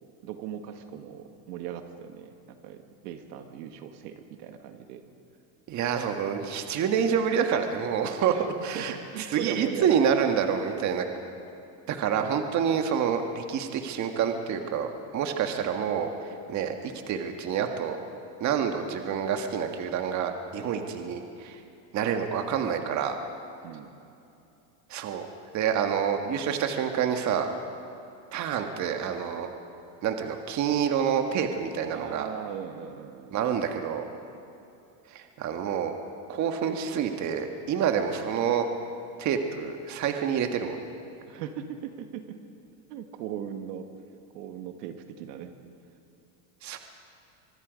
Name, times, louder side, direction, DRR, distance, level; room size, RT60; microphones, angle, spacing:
voice 1, 0.2-5.0 8.3-8.5 8.7-10.0 15.6-15.7 23.6-23.9 31.9-33.4 41.3-42.4 42.9-43.9 44.3-45.5, right 9 dB, 80° right, 6 dB, 1.9 m, -38 dB
voice 2, 5.7-8.3 8.6-8.9 9.3-11.1 11.9-18.0 18.4-21.6 21.9-23.2 24.9-25.3 25.5-27.5 28.3-29.5 30.0-32.3 33.3-34.0 35.1-36.0 36.3-38.7 39.2-40.8 46.6-46.8, right 7 dB, 35° right, 5 dB, 1.7 m, -27 dB
25.5 x 21.0 x 5.2 m, 2.7 s
supercardioid pair, 145°, 47 cm